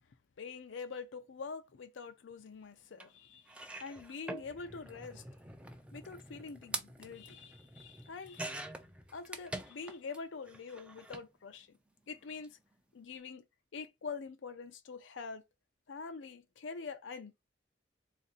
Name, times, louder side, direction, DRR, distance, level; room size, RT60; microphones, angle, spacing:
voice 1, 0.4-3.5 3.8-5.2 5.9-8.7 9.1-11.8 12.1-12.6 12.9-13.4 13.7-15.4 15.9-17.4, left 5 dB, 80° left, 0.5 m, -45 dB
sound 1, 3.0-3.1 3.5-10.2 10.5-11.3 12.3-12.5 12.7-12.8, right 1 dB, 5° right, 0.4 m, -45 dB
3.6 x 2.5 x 4.0 m
head